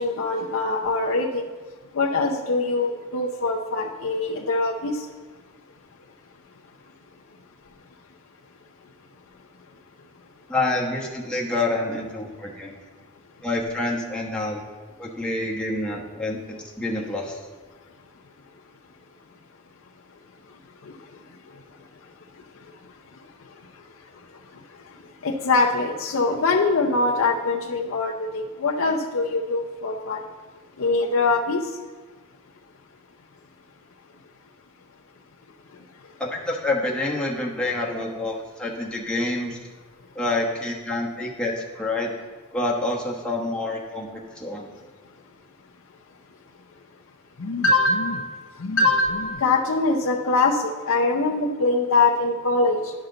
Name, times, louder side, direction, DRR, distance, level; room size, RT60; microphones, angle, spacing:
voice 1, 0.0-1.4 1.9-5.0 25.2-30.2 30.8-31.6 47.4-52.9, left 3 dB, 70° left, -1 dB, 0.6 m, -23 dB
voice 2, 10.5-12.7 13.4-14.6 15.0-17.4 36.2-39.6 40.1-42.1 42.5-44.7, left 2 dB, 5° left, -3 dB, 1.1 m, -27 dB
10.5 x 5.7 x 3.9 m, 1.4 s
head